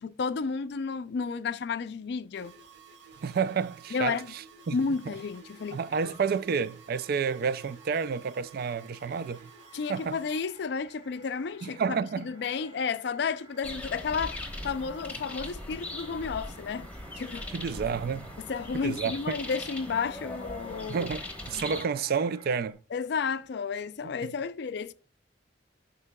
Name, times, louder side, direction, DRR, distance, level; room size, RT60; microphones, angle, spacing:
voice 1, 0.0-2.5 3.9-4.3 4.7-6.1 9.7-11.8 12.2-16.9 17.2-17.5 18.4-21.1 22.9-24.9, left 5 dB, 65° left, 0.4 m, -32 dB
sound 1, 2.3-10.4, right 5 dB, 75° right, 1.7 m, -53 dB
voice 2, 3.2-4.8 5.7-9.5 9.9-10.2 11.6-12.3 17.5-18.3 18.8-19.3 20.9-22.8, right 6 dB, 55° right, 0.3 m, -30 dB
sound 2, 4.6-22.7, right 3 dB, 30° right, 1.5 m, -55 dB
sound 3, 13.6-21.8, left 1 dB, 10° left, 1.0 m, -40 dB
8.1 x 5.5 x 2.2 m
head